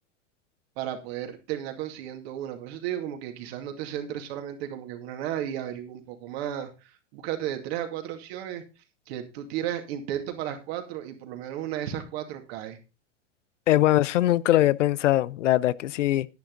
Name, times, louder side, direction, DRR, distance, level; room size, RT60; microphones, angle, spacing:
voice 1, 0.8-8.6 9.1-12.8, right 11 dB, 55° right, 2.4 m, -34 dB
voice 2, 13.7-16.3, left 14 dB, 75° left, 0.6 m, -21 dB
10.5 x 9.0 x 3.9 m
hypercardioid pair, 110°, 37 cm